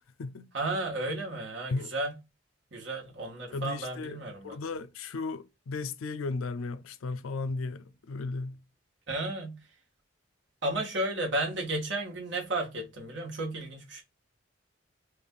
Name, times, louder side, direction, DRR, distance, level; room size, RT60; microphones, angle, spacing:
voice 1, 0.5-2.1 2.7-4.6 9.1-9.6 10.6-14.0, right 2 dB, 60° right, 1.3 m, -33 dB
voice 2, 3.5-8.6, left 3 dB, 85° left, 0.4 m, -35 dB
3.4 x 2.5 x 3.6 m
head